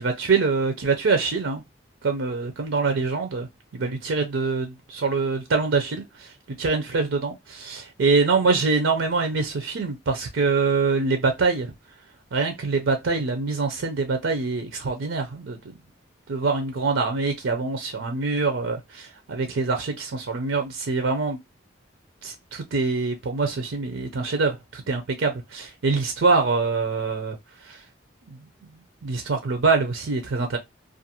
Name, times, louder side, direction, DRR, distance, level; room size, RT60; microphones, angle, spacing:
voice 1, 0.0-1.6 2.0-3.5 3.7-11.7 12.3-15.8 16.3-21.4 22.2-27.4 27.6-27.8 28.2-28.4 29.0-30.6, right 4 dB, 80° right, 0.5 m, -24 dB
2.5 x 2.3 x 2.8 m
head